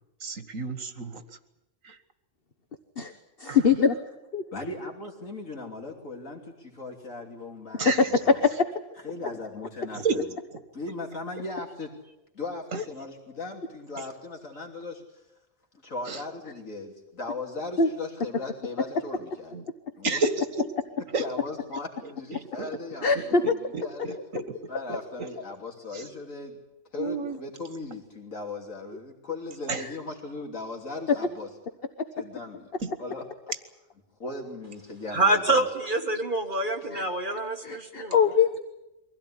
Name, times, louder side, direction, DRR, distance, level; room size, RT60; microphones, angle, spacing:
voice 1, 0.2-1.2 1.8-2.0 3.4-3.6 7.8-8.1 9.9-10.2 12.7-12.8 16.1-16.2 19.5-19.6 20.0-20.7 21.1-21.2 22.3-22.7 23.2-24.4 24.9-25.3 25.9-26.1 27.0-27.4 29.7-29.8 32.8-32.9, right 4 dB, 80° right, 10 dB, 2.0 m, -31 dB
voice 2, 3.4-4.0 4.3-4.4 7.7-7.8 8.4-8.7 12.7-12.8 17.8-17.9 23.0-23.4 29.8-29.9 36.9-37.0 37.6-38.6, left 6 dB, 45° left, 8 dB, 1.4 m, -23 dB
voice 3, 4.5-8.4 9.0-10.2 10.7-11.9 12.3-15.0 15.8-19.6 20.0-20.2 21.2-24.2 24.7-26.6 26.9-31.5 32.2-32.7 33.0-33.2 34.2-35.7 36.8-36.9, left 3 dB, 80° left, 1 dB, 3.4 m, -38 dB
voice 4, 35.1-38.1, right 2 dB, 40° right, 4 dB, 2.1 m, -26 dB
23.5 x 16.0 x 9.9 m, 0.96 s
omnidirectional pair, 1.4 m